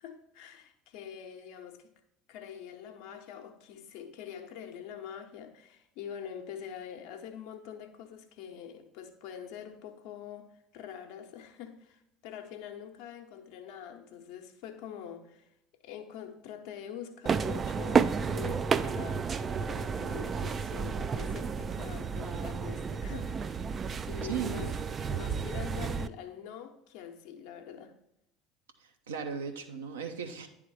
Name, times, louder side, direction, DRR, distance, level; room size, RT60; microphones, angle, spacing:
voice 1, 0.0-1.9 2.3-15.5 15.8-23.7 24.1-24.7 25.1-28.0, left 8 dB, 60° left, 0.8 m, -45 dB
sound 1, 17.3-26.1, right 5 dB, 30° right, 0.3 m, -31 dB
voice 2, 24.3-25.0 29.1-30.5, right 7 dB, 75° right, 0.7 m, -37 dB
10.0 x 3.6 x 4.7 m
figure-of-eight pair, 65°, 0 cm